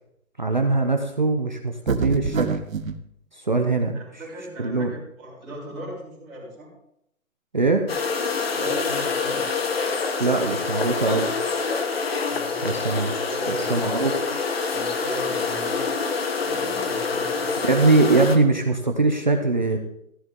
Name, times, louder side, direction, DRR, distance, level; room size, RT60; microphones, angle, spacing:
voice 1, 0.4-2.5 3.5-4.0 4.6-4.9 7.5-7.8 10.2-11.3 12.6-13.1 13.5-14.1 17.7-19.8, right 3 dB, 35° right, 4 dB, 0.7 m, -21 dB
sound 1, 1.9-3.0, right 5 dB, 70° right, 1.2 m, -25 dB
voice 2, 3.9-6.7 8.5-9.5 12.3-13.9 14.7-15.9 16.4-17.8, right 1 dB, ahead, -21 dB, 0.9 m, -37 dB
sound 2, 7.9-18.4, left 4 dB, 45° left, 1.3 m, -26 dB
14.0 x 9.8 x 3.7 m, 0.76 s
hypercardioid pair, 175°, 43 cm